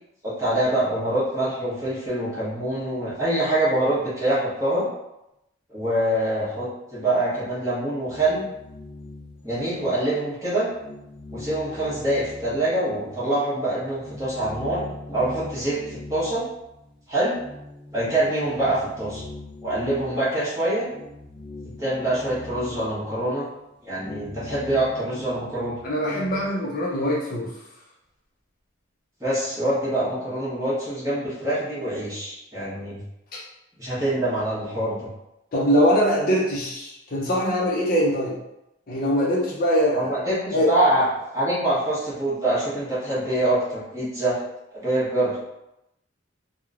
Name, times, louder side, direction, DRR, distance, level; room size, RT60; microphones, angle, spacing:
voice 1, 0.2-4.9 5.7-8.4 9.4-10.7 11.3-16.4 17.1-17.4 17.9-19.2 19.6-20.9 21.6-23.5 23.8-25.8 29.2-33.0 33.8-35.1 39.9-41.1 41.3-44.4 44.7-45.4, right 1 dB, 15° right, -10 dB, 0.9 m, -25 dB
sound 1, 8.0-10.3 10.6-13.4 13.7-26.6, left 2 dB, 30° left, 0.9 m, -41 dB
voice 2, 25.8-27.5 33.3-33.4 35.5-38.4 38.9-40.1 40.5-40.7, equal, 45° left, -4 dB, 0.5 m, -22 dB
3.0 x 2.0 x 2.4 m, 0.87 s
head